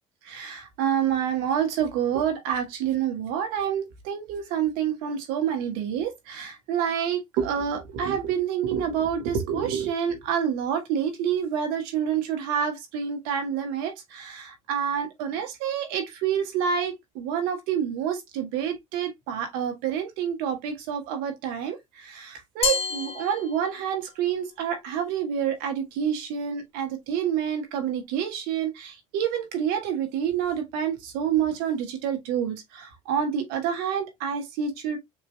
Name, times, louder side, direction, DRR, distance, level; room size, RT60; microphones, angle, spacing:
voice 1, 0.2-35.0, right 8 dB, 75° right, 1.6 m, -28 dB
Glass, 22.6-24.1, left 5 dB, 40° left, 1.1 m, -29 dB
7.0 x 2.9 x 2.2 m
supercardioid pair, 80°, 16 cm